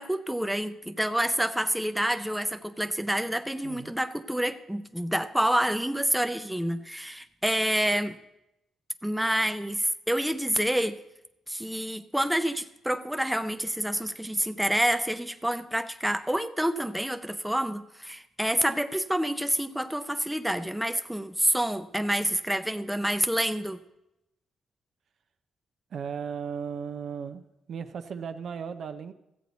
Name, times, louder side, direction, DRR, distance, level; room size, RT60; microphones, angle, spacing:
voice 1, 0.0-8.2 9.0-11.0 11.5-23.8, right 1 dB, 5° right, 9 dB, 0.5 m, -28 dB
voice 2, 3.6-3.9 25.9-29.1, right 6 dB, 60° right, 9 dB, 0.6 m, -36 dB
14.5 x 8.2 x 4.0 m, 0.89 s
cardioid pair, 90°, 0 cm